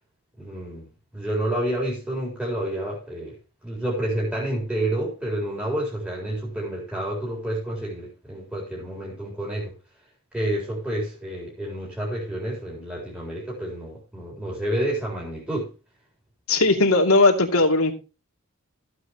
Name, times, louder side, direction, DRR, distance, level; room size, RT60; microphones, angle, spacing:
voice 1, 0.4-0.8 1.1-3.3 3.6-9.7 10.3-15.7, right 1 dB, 5° right, 3.9 m, -29 dB
voice 2, 16.5-17.9, left 2 dB, 85° left, 2.7 m, -18 dB
15.0 x 8.2 x 3.0 m
head